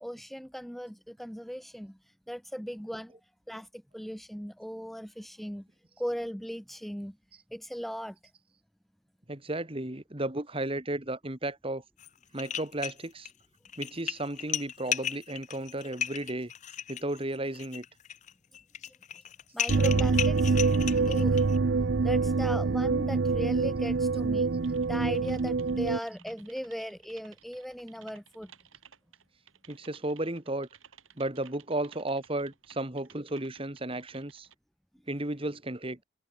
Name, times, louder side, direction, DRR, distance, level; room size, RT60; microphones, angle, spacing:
voice 1, 0.0-3.1 3.5-5.7 6.0-7.2 7.5-8.2 19.5-20.6 21.1-21.4 22.0-28.5, equal, ahead, 1.0 m, -38 dB
voice 2, 9.3-11.8 12.3-13.3 13.8-16.5 16.9-17.9 29.7-30.7 31.2-34.5 35.1-36.0, right 1 dB, 25° right, 1.8 m, -34 dB
sound 1, 12.0-12.1 12.4-13.3 13.6-21.6, left 9 dB, 35° left, 0.5 m, -35 dB
sound 2, 19.7-26.0, right 4 dB, 60° right, 0.5 m, -25 dB
Typing, 24.6-34.5, right 8 dB, 85° right, 6.4 m, -57 dB
head